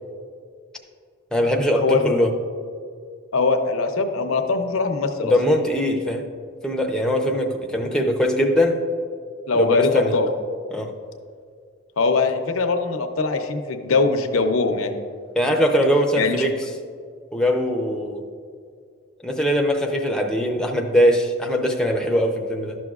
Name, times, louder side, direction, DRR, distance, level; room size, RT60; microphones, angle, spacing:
voice 1, 1.3-2.3 5.2-6.2 6.6-8.8 9.5-10.1 10.7-10.9 15.4-16.6 17.3-18.2 19.2-22.8, equal, 5° left, 2 dB, 0.5 m, -21 dB
voice 2, 3.3-5.3 9.5-10.3 12.0-14.9 16.1-16.5, left 4 dB, 85° left, 5 dB, 0.7 m, -21 dB
12.0 x 6.2 x 2.4 m, 2.2 s
head